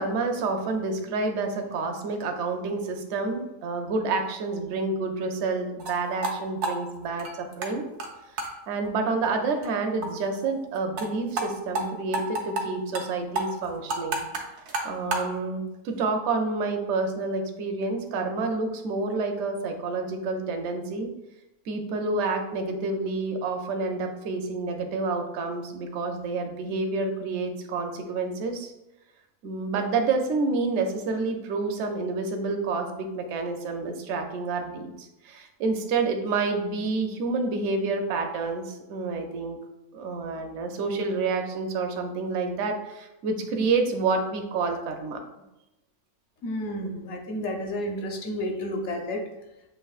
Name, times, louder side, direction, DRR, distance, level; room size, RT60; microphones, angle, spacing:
voice 1, 0.0-7.9 8.4-14.3 14.8-21.1 21.7-28.7 29.4-39.6 39.9-45.2, right 3 dB, 60° right, 4 dB, 0.8 m, -29 dB
sound 1, 5.8-5.9 6.2-6.3 6.6-7.7 8.0-8.1 8.4-8.5 8.8-8.9 9.2-9.3 9.6-9.7 10.0-10.1 10.3-10.4 10.7-11.1 11.4-11.5 11.8-11.9 12.1-12.6 12.9-13.1 13.4-15.3, right 2 dB, 90° right, 1.3 m, -29 dB
voice 2, 46.4-49.2, left 1 dB, 55° left, 2 dB, 1.0 m, -31 dB
7.4 x 2.9 x 2.4 m, 0.94 s
omnidirectional pair, 1.6 m